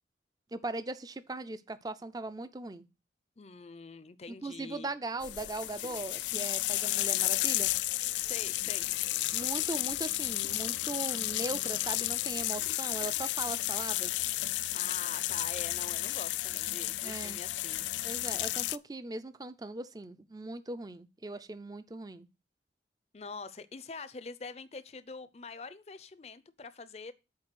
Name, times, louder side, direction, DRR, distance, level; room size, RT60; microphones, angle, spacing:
voice 1, 0.5-2.8 4.4-7.7 9.3-14.1 17.0-17.4 18.0-22.3, right 2 dB, 20° right, 0.5 m, -39 dB
voice 2, 3.4-4.9 8.2-8.8 14.7-17.8 23.1-27.1, left 4 dB, 35° left, 0.5 m, -45 dB
sound 1, 5.2-18.8, left 16 dB, 85° left, 0.3 m, -32 dB
7.4 x 4.5 x 6.2 m
head